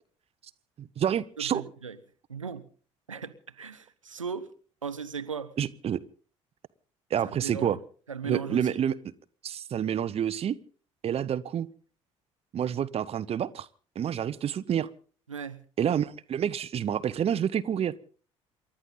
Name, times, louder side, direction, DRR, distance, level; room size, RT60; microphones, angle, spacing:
voice 1, 0.8-1.6 5.6-6.0 7.1-7.8 8.2-8.9 9.4-10.5 11.0-11.7 12.5-13.7 14.0-14.9 15.8-17.9, right 9 dB, 40° right, 1.0 m, -28 dB
voice 2, 1.4-2.0 2.3-2.7 3.1-4.5 4.8-5.5 7.2-7.8 8.1-8.8 15.3-15.6, right 6 dB, 85° right, 0.9 m, -37 dB
28.5 x 12.5 x 3.9 m
figure-of-eight pair, 55°, 16 cm